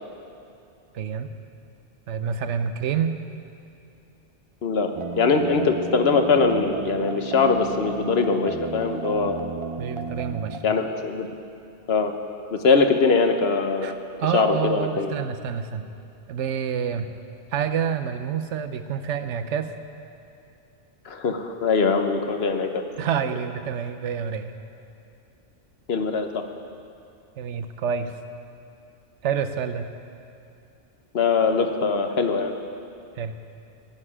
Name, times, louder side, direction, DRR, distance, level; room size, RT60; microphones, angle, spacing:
voice 1, 0.9-1.3 2.1-3.2 9.8-10.6 13.8-13.9 14.2-15.9 16.3-17.1 17.5-19.7 23.0-24.5 27.4-28.1 29.2-29.9 33.2-33.4, right 7 dB, 80° right, 9 dB, 1.1 m, -27 dB
sound 1, 4.9-10.6, right 4 dB, 40° right, 0.5 m, -33 dB
voice 2, 5.2-9.4 10.6-11.3 11.9-12.1 12.5-13.9 14.3-15.1 21.1-22.8 25.9-26.4 31.1-32.5, left 4 dB, 60° left, 6 dB, 1.2 m, -22 dB
15.5 x 7.0 x 10.0 m, 2.7 s
omnidirectional pair, 1.2 m